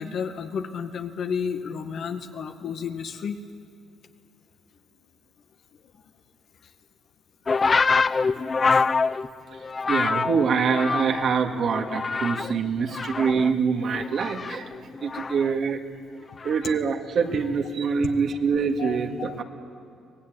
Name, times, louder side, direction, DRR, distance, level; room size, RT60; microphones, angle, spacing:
voice 1, 0.0-3.4 8.0-8.3 8.7-8.8 12.8-12.9 15.6-15.7 18.0-18.1 18.8-19.4, left 6 dB, 60° left, 6 dB, 1.7 m, -32 dB
sound 1, 7.5-11.4 11.7-12.6 12.9-15.5 16.4-16.7, left 4 dB, 30° left, 0.5 m, -25 dB
voice 2, 9.9-14.7 15.0-15.8 16.4-19.4, right 5 dB, 60° right, 4 dB, 2.0 m, -25 dB
24.0 x 18.5 x 9.5 m, 2.4 s
cardioid pair, 95°, 0 cm